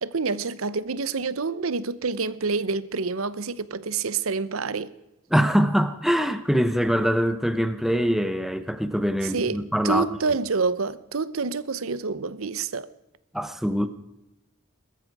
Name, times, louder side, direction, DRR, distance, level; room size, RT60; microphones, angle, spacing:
voice 1, 0.0-4.9 9.2-12.9, right 4 dB, 80° right, 0.8 m, -27 dB
voice 2, 5.3-10.1 13.3-13.9, equal, ahead, 0.9 m, -23 dB
20.5 x 13.5 x 4.8 m
head